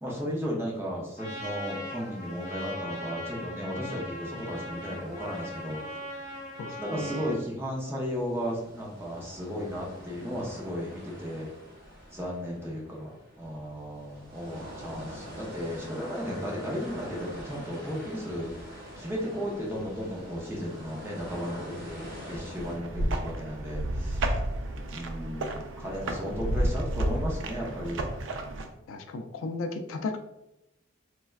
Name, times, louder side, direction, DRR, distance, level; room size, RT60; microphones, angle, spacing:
voice 1, 0.0-6.0 6.8-11.5 12.1-24.2 24.9-28.0, equal, 10° right, -3 dB, 0.5 m, -35 dB
Trumpet, 1.2-7.4, left 1 dB, 35° left, 0.7 m, -40 dB
sound 1, 4.3-7.8 8.1-22.7, equal, 50° right, 1.1 m, -45 dB
voice 2, 6.6-7.2 28.9-30.2, left 3 dB, 80° left, 6 dB, 0.3 m, -35 dB
sound 2, 22.6-28.7, right 1 dB, 65° right, 0.3 m, -31 dB
3.2 x 2.2 x 2.3 m, 0.90 s
head